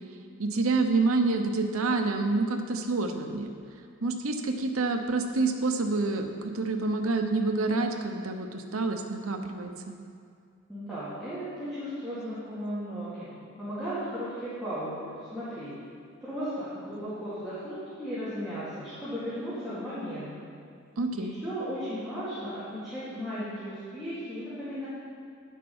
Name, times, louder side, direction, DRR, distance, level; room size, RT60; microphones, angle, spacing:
voice 1, 0.4-3.5 4.0-10.0 21.0-21.4, right 3 dB, 75° right, 5 dB, 0.9 m, -28 dB
voice 2, 10.7-15.7 16.2-20.4 21.1-24.9, equal, ahead, -14 dB, 2.7 m, -36 dB
10.0 x 7.4 x 5.5 m, 2.3 s
head